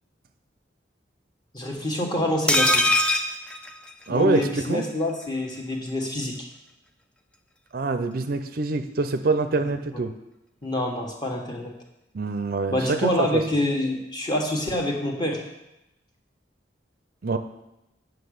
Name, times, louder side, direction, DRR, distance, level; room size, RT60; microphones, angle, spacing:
voice 1, 1.5-2.8 4.1-6.5 10.6-11.7 12.7-15.4, left 1 dB, 20° left, 0 dB, 1.5 m, -26 dB
sound 1, 2.5-4.4 4.7-4.8 5.1-5.2, left 1 dB, 5° left, 0.5 m, -22 dB
voice 2, 4.1-4.9 7.7-10.1 12.1-13.4 17.2-17.4, right 3 dB, 50° right, 9 dB, 0.5 m, -25 dB
9.1 x 6.2 x 6.5 m, 0.92 s
head